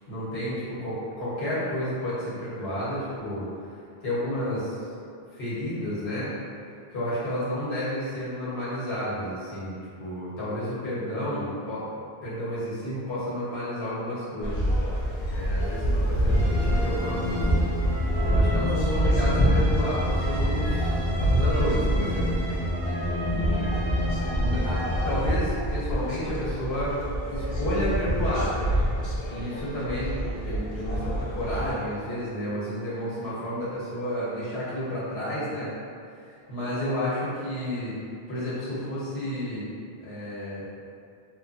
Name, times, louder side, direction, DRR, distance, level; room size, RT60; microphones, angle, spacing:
voice 1, 0.1-3.4 4.0-4.8 5.3-6.3 6.9-11.9 12.2-14.7 15.3-17.6 17.9-22.3 23.3-23.8 24.3-27.0 27.3-28.6 29.3-35.7 36.2-37.9 38.3-39.7 40.0-40.7, equal, 85° left, -10 dB, 1.2 m, -31 dB
sound 1, 14.4-31.7, equal, 70° left, 0.8 m, -26 dB
sound 2, 16.3-25.1, equal, 75° right, 0.8 m, -31 dB
3.1 x 2.2 x 2.6 m, 2.4 s
omnidirectional pair, 1.1 m